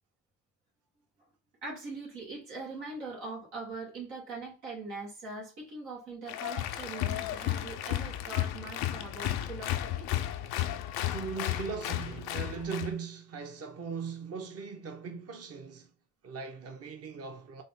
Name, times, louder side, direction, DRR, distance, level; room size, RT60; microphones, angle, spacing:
voice 1, 1.6-10.1, right 3 dB, 90° right, 1.7 m, -42 dB
Applause, 6.3-12.9, left 13 dB, 80° left, 0.5 m, -33 dB
voice 2, 11.1-15.9 16.2-17.6, right 5 dB, 40° right, 0.8 m, -39 dB
4.0 x 2.0 x 3.6 m
supercardioid pair, 55°, 37 cm